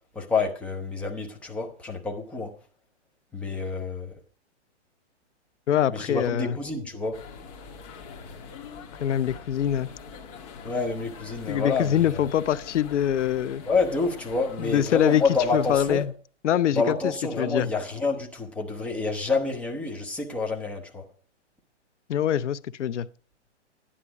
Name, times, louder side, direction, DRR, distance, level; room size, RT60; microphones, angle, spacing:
voice 1, 0.1-2.5 3.3-4.1 5.9-7.2 10.6-12.2 13.6-16.0 16.7-21.0, left 4 dB, 5° left, 0.8 m, -28 dB
voice 2, 5.7-6.6 9.0-9.9 11.5-13.6 14.6-15.2 15.5-16.1 16.4-17.7 22.1-23.1, left 10 dB, 80° left, 0.7 m, -24 dB
sound 1, 7.1-16.1, left 5 dB, 30° left, 1.7 m, -43 dB
12.5 x 10.0 x 4.9 m
hypercardioid pair, 160°, 35 cm